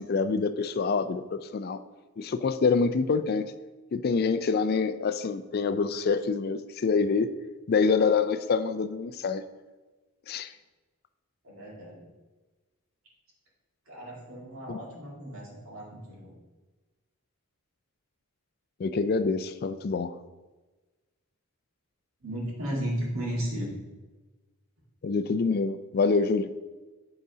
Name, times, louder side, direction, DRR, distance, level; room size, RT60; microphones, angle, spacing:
voice 1, 0.0-1.8 2.2-3.5 3.9-7.3 7.7-9.4 10.3-10.5 14.7-14.8 18.8-20.2 25.0-26.5, left 4 dB, 45° left, 11 dB, 0.3 m, -26 dB
voice 2, 11.4-12.1 13.9-16.3 22.2-23.7, right 1 dB, 70° right, -4 dB, 2.0 m, -34 dB
7.9 x 4.0 x 4.9 m, 1.2 s
head